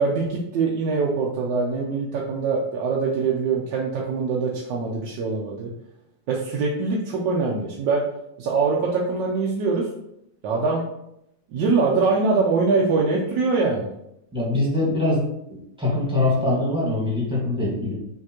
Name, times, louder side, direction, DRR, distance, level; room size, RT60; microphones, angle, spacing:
voice 1, 0.0-5.7 6.3-8.0 8.4-9.8 10.4-10.8 11.5-13.9, right 4 dB, 80° right, -2 dB, 1.3 m, -23 dB
voice 2, 14.3-15.2 15.5-17.9, left 2 dB, 5° right, -6 dB, 1.2 m, -23 dB
5.7 x 2.8 x 2.9 m, 0.80 s
omnidirectional pair, 1.9 m